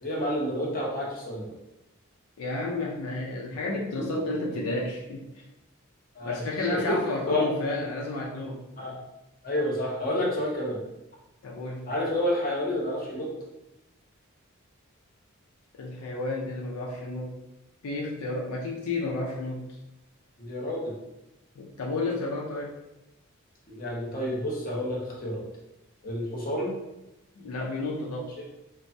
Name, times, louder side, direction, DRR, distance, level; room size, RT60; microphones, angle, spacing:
voice 1, 0.0-1.5 6.1-7.4 8.8-9.0 9.4-10.8 11.9-13.3 20.4-21.0 23.7-25.4 26.0-26.7, left 1 dB, 40° left, -3 dB, 0.7 m, -29 dB
voice 2, 2.4-5.4 6.2-9.0 11.4-11.9 15.7-17.3 17.8-19.7 21.6-22.8 27.4-28.4, left 2 dB, 80° left, -2 dB, 0.4 m, -32 dB
3.1 x 2.0 x 2.6 m, 0.93 s
head